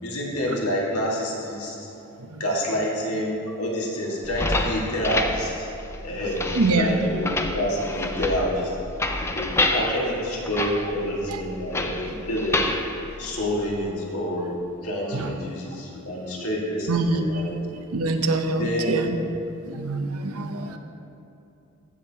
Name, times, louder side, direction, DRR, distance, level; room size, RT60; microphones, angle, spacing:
voice 1, 0.0-1.9 2.4-5.7 6.0-6.4 6.7-8.7 9.2-12.7 13.2-17.6 18.6-19.1, equal, 85° left, -3 dB, 1.8 m, -28 dB
sound 1, 4.2-13.9, left 2 dB, 10° left, 0.3 m, -29 dB
voice 2, 6.5-6.9 9.6-9.7 10.6-10.7 11.3-11.4 15.1-15.3 16.4-16.5 16.9-17.4 17.9-19.2 19.7-20.8, right 2 dB, 85° right, 6 dB, 0.7 m, -25 dB
15.0 x 7.3 x 2.9 m, 2.7 s
head